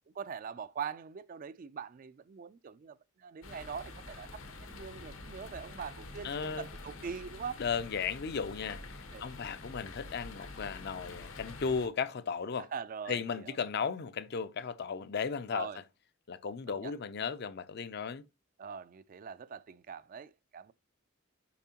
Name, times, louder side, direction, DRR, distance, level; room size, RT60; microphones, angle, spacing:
voice 1, 0.1-7.6 9.1-9.2 12.6-13.6 15.5-15.8 16.7-16.9 18.6-20.7, right 6 dB, 45° right, 0.3 m, -43 dB
sound 1, 3.4-11.9, left 2 dB, 80° left, 1.2 m, -47 dB
voice 2, 6.2-6.7 7.6-12.7 13.1-15.7 16.3-18.3, left 6 dB, 55° left, 0.5 m, -35 dB
7.1 x 5.0 x 2.8 m
head